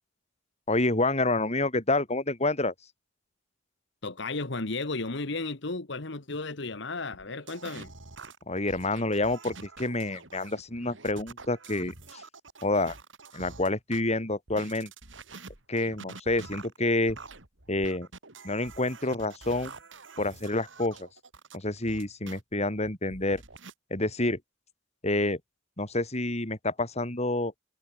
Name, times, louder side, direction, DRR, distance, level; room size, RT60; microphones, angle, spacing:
voice 1, 0.7-2.7 8.5-12.2 12.6-13.0 13.3-14.9 15.7-17.2 17.7-18.1 18.4-19.7 20.2-21.1 21.5-23.4 23.9-24.4 25.0-25.4 25.8-27.5, left 2 dB, 35° left, 4.6 m, -28 dB
voice 2, 4.0-7.9, left 3 dB, 70° left, 1.7 m, -34 dB
sound 1, 7.1-14.0 14.5-22.4 22.8-23.7, right 3 dB, 85° right, 4.9 m, -47 dB
head